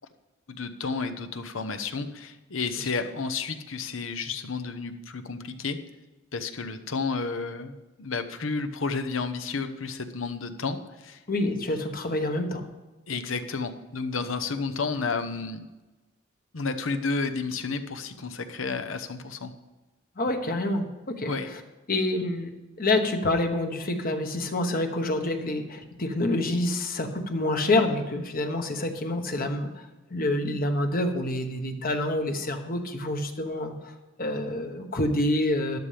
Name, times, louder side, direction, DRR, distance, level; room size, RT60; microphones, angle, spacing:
voice 1, 0.5-5.8 6.3-7.7 8.0-11.2 13.1-15.7 16.5-19.5 21.2-21.5, left 4 dB, 75° left, 9 dB, 0.9 m, -31 dB
voice 2, 11.3-12.6 20.2-21.3 21.9-22.5 22.8-29.7 30.1-33.7 34.2-35.8, left 2 dB, 45° left, 5 dB, 1.2 m, -27 dB
13.0 x 11.0 x 3.4 m, 1.1 s
head